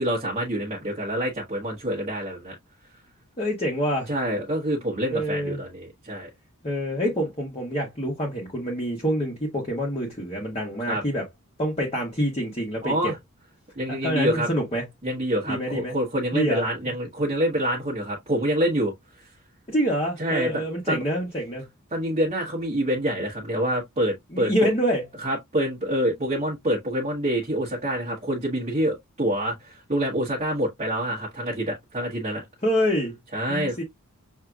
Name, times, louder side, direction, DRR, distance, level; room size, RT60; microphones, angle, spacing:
voice 1, 0.0-2.5 4.1-6.3 10.8-11.0 12.8-13.2 13.8-14.5 15.0-18.9 20.2-21.0 21.9-24.7 25.2-32.4 33.3-33.8, right 1 dB, 30° right, 1.2 m, -26 dB
voice 2, 3.4-4.1 5.1-5.6 6.6-11.2 11.6-12.9 13.9-14.8 15.5-15.9 16.3-16.6 19.7-21.7 24.3-25.0 32.6-33.1 33.5-33.8, equal, 25° left, 1.2 m, -26 dB
6.4 x 2.8 x 2.3 m
head